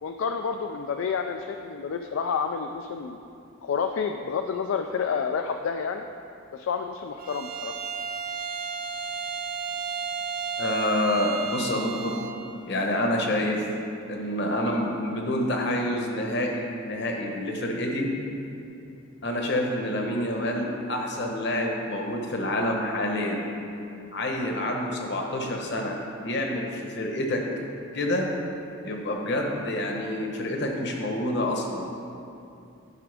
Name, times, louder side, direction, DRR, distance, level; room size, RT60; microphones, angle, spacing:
voice 1, 0.0-3.2 3.6-6.0 6.5-7.8 19.5-19.6, left 6 dB, 70° left, 5 dB, 0.3 m, -29 dB
Bowed string instrument, 7.2-12.4, right 6 dB, 40° right, 0.5 m, -33 dB
voice 2, 10.6-12.2 12.6-13.6 14.1-18.1 19.2-23.4 24.1-27.4 27.9-28.3 28.8-31.9, left 1 dB, 55° left, 1 dB, 1.0 m, -27 dB
11.0 x 6.0 x 3.4 m, 2.6 s
head